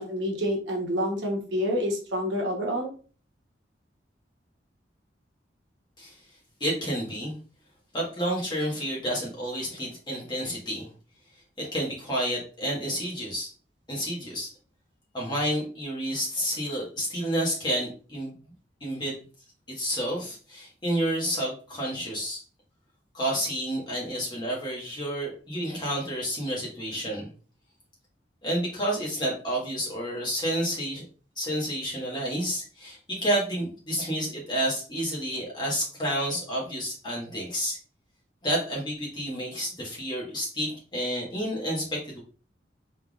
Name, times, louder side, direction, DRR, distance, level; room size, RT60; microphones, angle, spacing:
voice 1, 0.0-2.9, equal, 80° right, 0 dB, 1.0 m, -28 dB
voice 2, 6.6-7.3 7.9-10.9 11.6-13.5 13.9-14.5 15.1-18.3 18.8-19.2 19.7-22.4 23.1-27.3 28.4-31.1 31.4-37.8 38.4-42.2, equal, 25° left, -4 dB, 1.3 m, -30 dB
3.4 x 3.4 x 2.4 m, 0.39 s
head